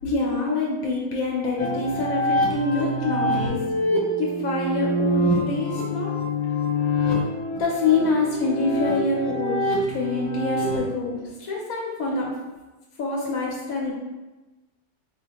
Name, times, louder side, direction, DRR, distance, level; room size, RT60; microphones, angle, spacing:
voice 1, 0.0-3.6 4.2-6.1 7.6-12.3 13.0-13.9, left 3 dB, 85° left, -2 dB, 1.1 m, -26 dB
sound 1, 1.6-10.8, left 1 dB, 55° left, 0.9 m, -25 dB
4.1 x 2.1 x 2.8 m, 1.1 s
omnidirectional pair, 1.4 m